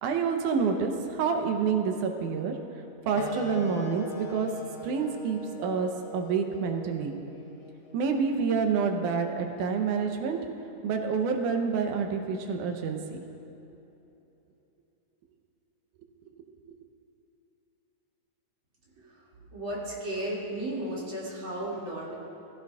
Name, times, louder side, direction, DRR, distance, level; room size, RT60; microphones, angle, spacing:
voice 1, 0.0-2.6 3.1-4.5 4.8-7.1 7.9-10.4 10.8-13.2, right 5 dB, 90° right, 4 dB, 2.3 m, -28 dB
Wind instrument woodwind instrument, 3.1-8.3, left 2 dB, 75° left, 1.1 m, -41 dB
voice 2, 19.5-22.1, right 1 dB, 40° right, -6 dB, 2.9 m, -34 dB
16.5 x 15.0 x 2.4 m, 3.0 s
omnidirectional pair, 3.5 m